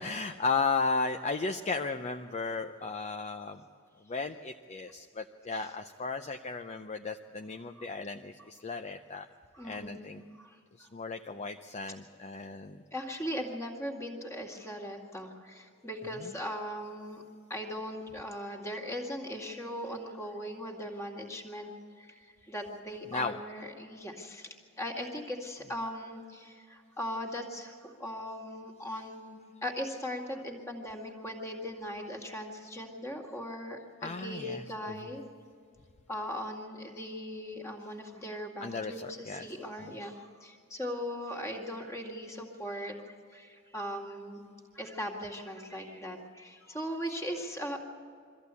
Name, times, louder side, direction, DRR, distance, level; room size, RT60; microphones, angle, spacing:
voice 1, 0.0-3.6 4.1-9.3 9.6-10.2 10.8-12.8 16.0-16.4 23.0-23.4 28.9-29.0 34.0-35.2 38.6-40.0, left 4 dB, 30° left, 6 dB, 0.6 m, -35 dB
voice 2, 9.5-10.1 10.4-10.9 12.9-17.2 17.5-21.7 22.0-35.2 36.1-44.4 44.7-47.8, equal, 15° left, 1 dB, 2.2 m, -39 dB
23.5 x 14.5 x 8.3 m, 2.2 s
head